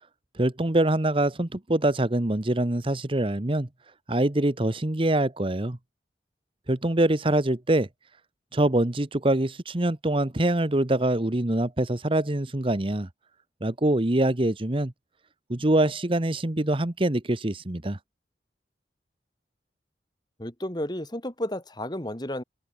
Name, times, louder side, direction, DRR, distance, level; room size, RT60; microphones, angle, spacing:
voice 1, 0.3-3.7 4.1-5.8 6.7-7.9 8.5-13.1 13.6-14.9 15.5-18.0, right 1 dB, 30° right, 1.1 m, -24 dB
voice 2, 20.4-22.4, left 1 dB, 25° left, 3.1 m, -32 dB
open air
head